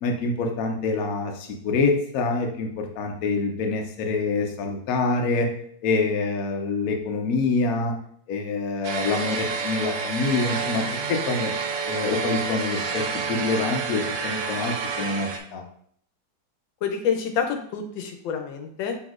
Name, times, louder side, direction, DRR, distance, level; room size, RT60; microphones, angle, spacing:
voice 1, 0.0-5.5 5.8-7.9 8.3-11.5 11.8-15.6, left 3 dB, 65° left, 3 dB, 1.0 m, -26 dB
sound 1, 8.8-15.4, right 5 dB, 85° right, 1.4 m, -29 dB
voice 2, 16.8-19.0, left 7 dB, 85° left, 5 dB, 1.4 m, -27 dB
6.0 x 3.5 x 2.4 m, 0.64 s
omnidirectional pair, 2.0 m